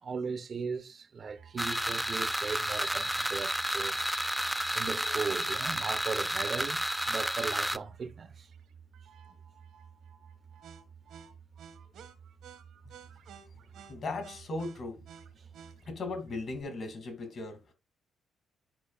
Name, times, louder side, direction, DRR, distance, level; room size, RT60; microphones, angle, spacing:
voice 1, 0.0-4.2 4.7-8.5 15.4-15.5, right 5 dB, 45° right, 0.7 m, -38 dB
sound 1, 1.3-16.6, right 7 dB, 75° right, 1.3 m, -53 dB
sound 2, 1.6-7.8, right 1 dB, 5° right, 0.4 m, -31 dB
voice 2, 13.9-15.0 15.9-17.7, left 3 dB, 55° left, 2.3 m, -37 dB
10.5 x 5.0 x 2.4 m
cardioid pair, 90°, 0 cm